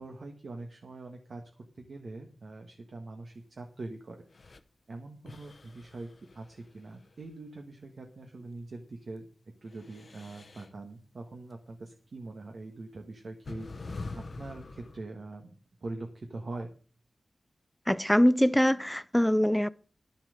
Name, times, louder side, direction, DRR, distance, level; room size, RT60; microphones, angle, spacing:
voice 1, 0.0-1.5 1.7-4.6 4.9-9.3 9.6-15.5 15.8-16.7, right 2 dB, 60° right, 1.5 m, -43 dB
sound 1, 4.3-4.6 5.3-7.3 9.6-10.7 12.2-12.3 13.4-15.0, left 3 dB, 50° left, 0.9 m, -44 dB
voice 2, 17.9-19.7, equal, 5° left, 0.4 m, -23 dB
11.5 x 7.3 x 6.5 m
wide cardioid pair, 120°, 0 cm